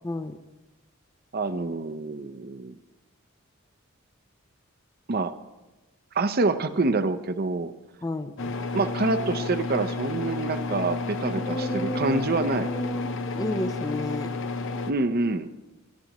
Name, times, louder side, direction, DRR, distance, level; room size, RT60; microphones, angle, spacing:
voice 1, 0.0-0.4 8.0-8.5 11.3-14.3, left 1 dB, 15° left, 9 dB, 0.6 m, -32 dB
voice 2, 1.3-2.8 5.1-5.4 6.1-7.7 8.7-12.7 14.9-15.5, right 3 dB, 45° right, 11 dB, 0.7 m, -26 dB
sound 1, 8.4-14.9, left 3 dB, 65° left, 0.7 m, -31 dB
26.5 x 11.5 x 3.0 m, 1.1 s
head